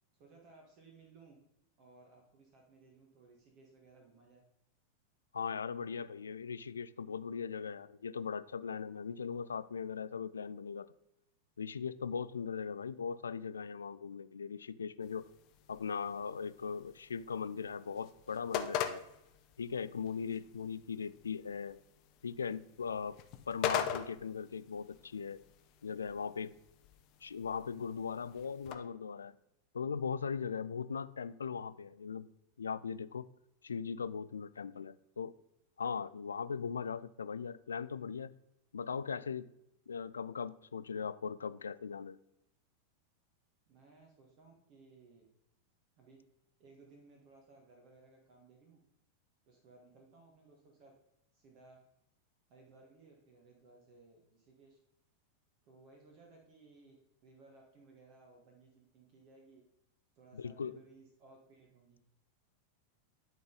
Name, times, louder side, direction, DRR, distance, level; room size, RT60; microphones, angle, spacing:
voice 1, 0.1-1.4 1.8-4.4 12.6-12.7 43.7-45.2 46.0-46.2 46.6-48.8 49.5-50.9 51.3-51.8 52.5-54.8 55.6-57.0 57.2-59.6 60.1-62.0, right 3 dB, 40° right, 1.5 m, -60 dB
voice 2, 5.3-10.9 11.6-15.3 15.7-19.0 19.6-21.8 22.2-23.2 23.5-25.4 25.8-26.5 27.2-29.3 29.7-32.3 32.6-33.2 33.6-35.3 35.8-38.3 38.7-39.5 39.9-42.2 60.3-60.8, left 6 dB, 70° left, 0.3 m, -39 dB
sound 1, 15.0-28.8, left 9 dB, 40° left, 0.7 m, -43 dB
11.0 x 3.9 x 3.9 m
figure-of-eight pair, 90°, 0 cm